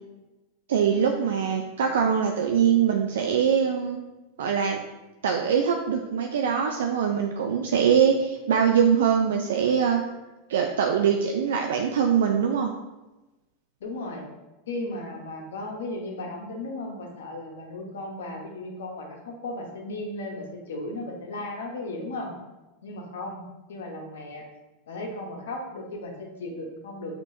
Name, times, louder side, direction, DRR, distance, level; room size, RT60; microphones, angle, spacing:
voice 1, 0.7-4.0 4.4-4.8 5.2-10.0 10.5-12.7, right 7 dB, 80° right, 3 dB, 0.3 m, -23 dB
voice 2, 13.8-14.2 14.7-22.3 22.8-23.4 23.7-24.4 24.9-27.2, left 2 dB, 80° left, 1 dB, 0.9 m, -35 dB
5.4 x 2.9 x 2.7 m, 1.1 s
hypercardioid pair, 105°, 0 cm